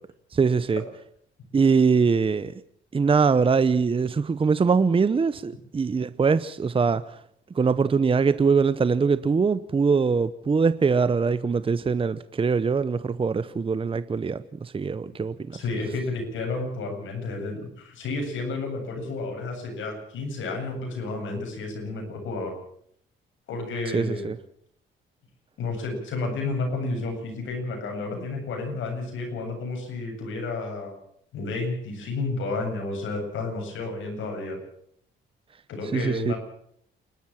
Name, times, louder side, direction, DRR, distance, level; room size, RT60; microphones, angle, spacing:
voice 1, 0.3-0.8 1.5-2.6 2.9-7.2 7.5-15.6 23.9-24.4 35.9-36.3, right 5 dB, 25° right, 0.8 m, -22 dB
voice 2, 15.5-22.6 23.5-24.3 25.6-31.0 31.3-34.6 35.7-36.4, left 3 dB, 75° left, 8.0 m, -31 dB
28.5 x 12.5 x 7.4 m
cardioid pair, 90°, 20 cm